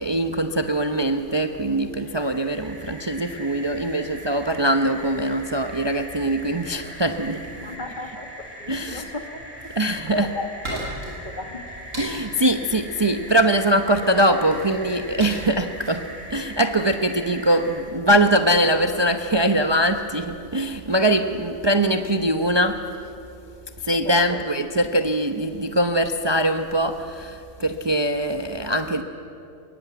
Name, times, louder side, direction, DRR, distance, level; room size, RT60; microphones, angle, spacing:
voice 1, 0.0-7.4 8.7-9.1 9.7-10.3 12.0-16.0 16.3-22.8 23.8-29.0, right 1 dB, 25° right, 6 dB, 0.8 m, -22 dB
sound 1, 1.9-17.8, equal, 50° right, 6.9 m, -41 dB
voice 2, 7.6-9.6 9.8-11.7 24.0-24.4, left 1 dB, 35° left, 4 dB, 2.4 m, -35 dB
sound 2, 10.6-17.2, equal, 75° right, 8.2 m, -38 dB
23.5 x 22.5 x 9.3 m, 2.6 s
omnidirectional pair, 1.3 m